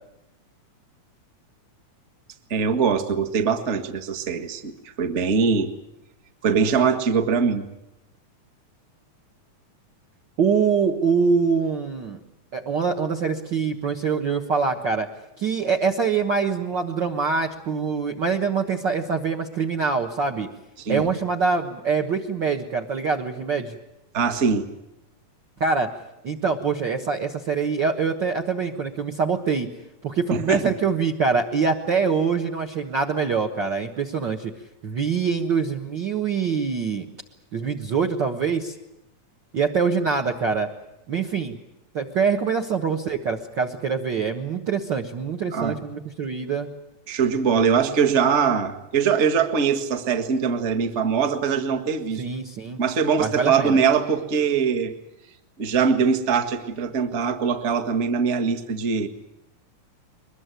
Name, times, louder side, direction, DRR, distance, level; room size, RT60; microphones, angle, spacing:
voice 1, 2.5-5.7 6.4-7.7 20.8-21.0 24.1-24.7 30.3-30.7 45.5-45.8 47.1-52.2 52.8-54.9 55.6-59.1, right 6 dB, 30° right, 7 dB, 1.3 m, -22 dB
voice 2, 10.4-12.2 12.5-15.1 15.4-20.5 20.9-23.7 25.6-25.9 26.2-29.7 30.0-34.5 34.8-37.1 37.5-38.7 39.5-40.7 41.1-41.6 41.9-46.7 52.2-52.8 53.2-53.8, right 5 dB, 50° right, 2 dB, 1.4 m, -24 dB
23.0 x 21.0 x 9.2 m, 0.87 s
omnidirectional pair, 3.6 m